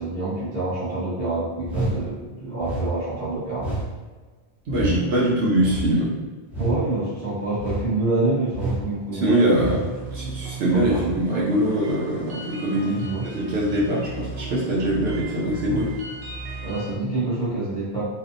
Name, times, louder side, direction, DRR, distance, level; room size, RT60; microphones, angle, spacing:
voice 1, 0.0-3.7 4.9-5.2 6.6-9.3 10.5-11.2 12.7-13.3 15.7-15.8 16.6-18.0, right 2 dB, 35° right, -11 dB, 1.2 m, -27 dB
sound 1, 1.6-2.0 2.6-2.9 3.6-3.9 4.7-5.0 5.6-5.9 6.5-6.8 7.6-7.9 8.5-8.8 9.6-9.9, right 1 dB, ahead, 0.5 m, -28 dB
voice 2, 4.7-6.1 9.2-9.8 10.1-12.9 13.2-15.9, right 1 dB, 70° right, -6 dB, 0.9 m, -22 dB
sound 2, 9.5-16.9, right 4 dB, 55° right, 0.4 m, -36 dB
2.7 x 2.1 x 2.5 m, 1.3 s
omnidirectional pair, 1.1 m